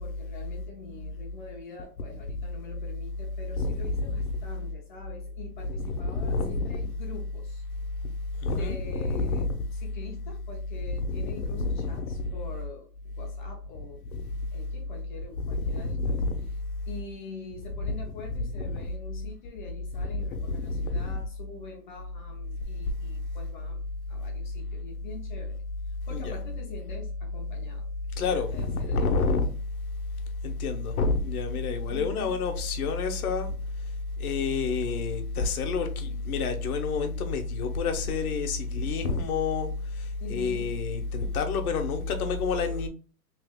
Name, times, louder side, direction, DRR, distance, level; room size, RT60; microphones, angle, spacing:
voice 1, 0.0-7.6 8.3-14.0 14.5-16.2 16.9-27.9 28.3-29.3 31.9-32.4 36.0-36.2 40.2-40.8, left 3 dB, 30° left, 0.6 m, -45 dB
voice 2, 3.6-4.4 5.8-6.9 8.4-9.6 11.0-12.3 14.1-14.2 15.4-16.5 17.8-18.9 19.9-21.2 26.1-26.4 28.2-29.5 30.4-33.6 34.2-42.9, left 4 dB, 60° left, 0.9 m, -29 dB
3.2 x 2.8 x 3.6 m
hypercardioid pair, 160°, 49 cm